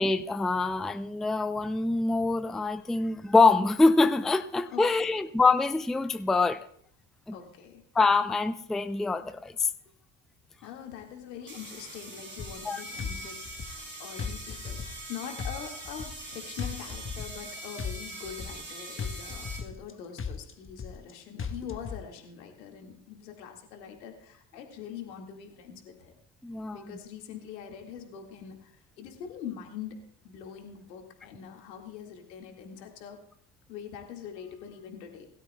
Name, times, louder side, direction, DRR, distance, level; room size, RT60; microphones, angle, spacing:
voice 1, 0.0-6.6 7.3-7.4 7.9-9.7 12.7-12.8 26.4-26.8, left 3 dB, ahead, 11 dB, 0.5 m, -25 dB
voice 2, 4.7-5.2 7.3-7.8 10.6-26.1 26.7-30.0 30.2-33.2 33.7-35.3, left 8 dB, 80° left, 3 dB, 2.1 m, -43 dB
sound 1, 10.6-10.7 11.4-19.6, right 1 dB, 25° right, 5.7 m, -42 dB
sound 2, 12.4-12.7 13.0-13.9 14.2-15.1 15.4-16.3 16.6-17.5 17.8-18.7 19.0-19.9 20.2-21.1 21.4-22.0, left 6 dB, 25° left, 1.2 m, -36 dB
21.0 x 12.5 x 2.3 m, 0.64 s
hypercardioid pair, 60°, 49 cm